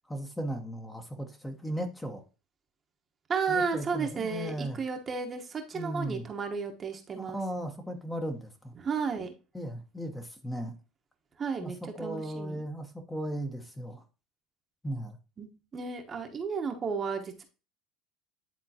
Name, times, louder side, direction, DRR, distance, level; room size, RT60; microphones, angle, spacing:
voice 1, 0.1-2.2 3.5-4.8 5.7-6.3 7.2-8.7 9.5-10.7 11.6-14.0 14.8-15.2, right 1 dB, 10° left, 5 dB, 1.0 m, -36 dB
voice 2, 3.3-7.4 8.8-9.3 11.4-12.6 15.4-17.4, right 5 dB, 30° right, 4 dB, 1.1 m, -33 dB
10.0 x 3.6 x 2.8 m, 0.32 s
supercardioid pair, 105°, 0 cm